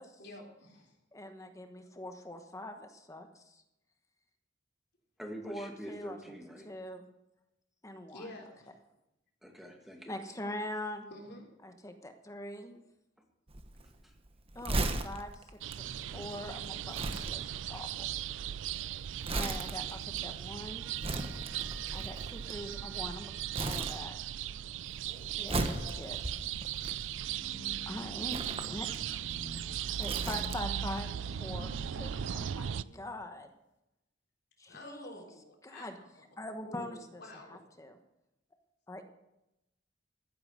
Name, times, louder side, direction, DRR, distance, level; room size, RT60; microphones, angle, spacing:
voice 1, 0.2-1.0 8.1-8.7 11.1-11.5 25.1-26.0 34.7-36.1 36.6-37.6, left 1 dB, 60° left, 0 dB, 3.7 m, -49 dB
voice 2, 1.1-3.6 5.5-6.2 6.7-7.0 7.8-8.3 10.1-11.1 11.6-12.8 14.5-18.1 19.3-20.9 21.9-23.3 23.6-24.2 25.4-25.6 26.0-26.2 26.5-26.9 27.9-28.4 28.7-29.3 30.0-33.5 34.6-35.2 35.6-35.9 36.4-37.2 37.5-38.0 38.9-39.0, left 1 dB, 15° left, 6 dB, 1.1 m, -43 dB
voice 3, 5.2-6.7 9.4-10.2 14.0-14.1, equal, ahead, 2 dB, 2.1 m, -45 dB
Crumpling crinkling, 13.5-23.1 23.5-24.5 24.8-27.5 28.2-30.8 31.1-31.3, right 2 dB, 30° right, 1.1 m, -38 dB
sound 1, 15.6-32.8, right 10 dB, 85° right, 0.4 m, -38 dB
sound 2, 27.2-33.0, left 1 dB, 75° left, 1.9 m, -49 dB
15.0 x 8.8 x 6.4 m, 0.90 s
head